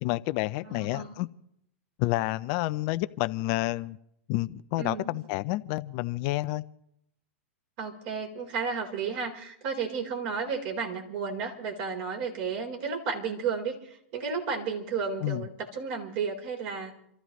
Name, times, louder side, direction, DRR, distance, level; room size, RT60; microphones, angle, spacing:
voice 1, 0.0-1.3 2.0-4.0 4.3-6.6 15.2-15.5, left 18 dB, 45° left, 13 dB, 0.5 m, -29 dB
voice 2, 0.6-1.1 4.8-5.2 7.8-16.9, right 5 dB, 50° right, 1 dB, 4.0 m, -33 dB
28.5 x 14.5 x 3.1 m, 0.76 s
hypercardioid pair, 125°, 7 cm